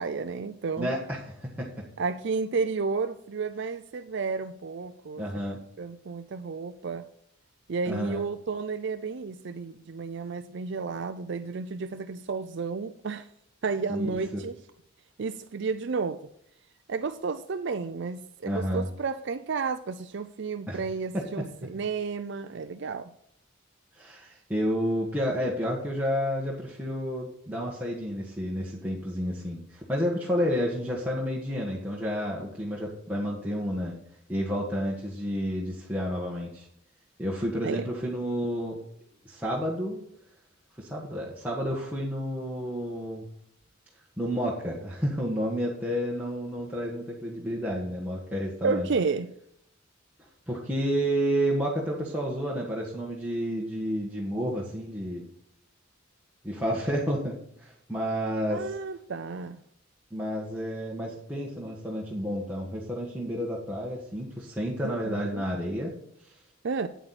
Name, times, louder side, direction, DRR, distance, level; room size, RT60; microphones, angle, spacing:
voice 1, 0.0-0.9 2.0-5.2 5.8-7.1 7.7-13.3 13.6-14.6 15.2-16.3 16.9-23.1 37.6-37.9 48.6-49.3 58.5-59.6 64.8-65.5 66.6-66.9, right 4 dB, 60° right, 10 dB, 0.5 m, -32 dB
voice 2, 0.8-1.7 5.2-5.6 7.9-8.2 13.9-14.4 18.4-18.9 20.7-20.8 21.1-21.2 23.9-33.9 34.3-36.7 37.2-38.8 39.2-40.0 40.8-43.2 44.2-48.9 50.2-55.2 56.4-58.7 60.1-65.9 66.2-66.4, equal, 5° right, -5 dB, 1.5 m, -30 dB
9.2 x 8.8 x 4.2 m, 0.70 s
head